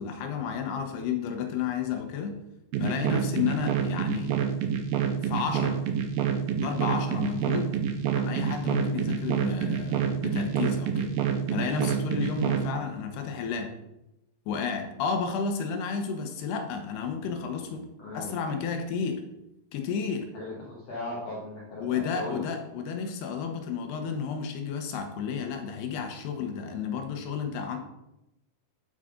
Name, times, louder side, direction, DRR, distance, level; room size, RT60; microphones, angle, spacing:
voice 1, 0.0-2.4 2.8-4.3 5.2-5.8 6.5-7.8 8.1-11.1 11.5-13.7 14.5-17.9 18.1-19.2 19.7-20.3 21.8-27.8, left 6 dB, 75° left, 4 dB, 3.0 m, -32 dB
sound 1, 2.7-12.7, right 8 dB, 75° right, 2.3 m, -27 dB
voice 2, 18.0-18.6 20.3-22.4, left 2 dB, 55° left, -5 dB, 2.0 m, -38 dB
9.8 x 8.1 x 3.8 m, 0.88 s
omnidirectional pair, 4.8 m